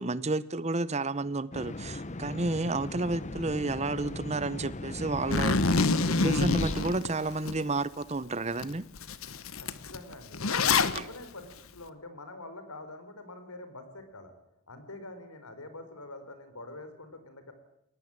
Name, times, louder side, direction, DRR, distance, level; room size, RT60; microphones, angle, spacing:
voice 1, 0.0-8.9 10.9-11.0, right 2 dB, 30° right, 17 dB, 0.8 m, -31 dB
sound 1, 1.5-6.8, left 2 dB, 30° left, 1.0 m, -38 dB
Zipper (clothing), 5.3-7.5 8.0-8.1 8.6-8.7 9.0-11.0, left 4 dB, 70° left, 1.2 m, -26 dB
voice 2, 9.6-10.4 10.7-14.3 14.7-17.5, left 2 dB, 85° left, 9 dB, 4.4 m, -45 dB
21.5 x 19.0 x 8.9 m, 0.78 s
head